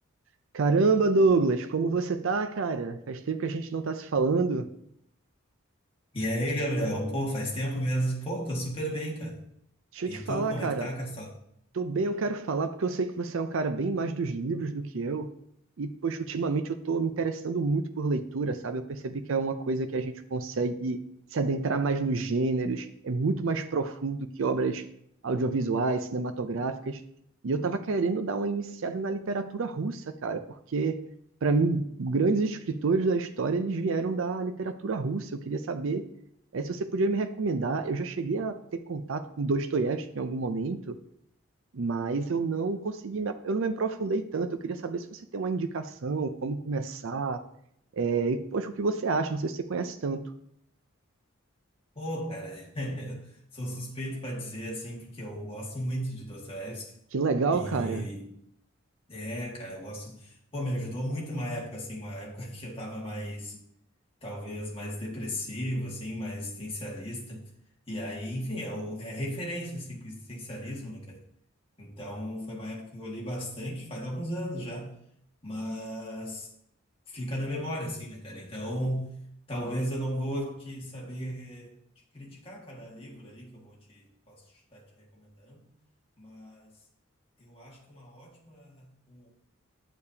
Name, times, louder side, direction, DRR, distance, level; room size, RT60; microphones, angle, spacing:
voice 1, 0.5-4.7 9.9-10.9 11.7-15.3 15.8-21.0 21.3-24.8 25.2-27.0 27.4-30.4 30.7-31.0 31.4-36.0 36.5-41.0 41.7-47.4 48.0-50.3 57.1-58.1, right 3 dB, 65° right, 0.5 m, -28 dB
voice 2, 6.1-9.4 10.1-11.4 52.0-56.9 57.5-58.3 59.1-63.6 64.2-67.4 67.9-71.2 71.8-75.0 75.4-76.5 77.1-79.1 79.5-81.7 82.1-84.4 84.7-85.7 86.2-86.7 87.4-89.3, equal, 25° left, 1.9 m, -35 dB
9.9 x 6.7 x 2.8 m
head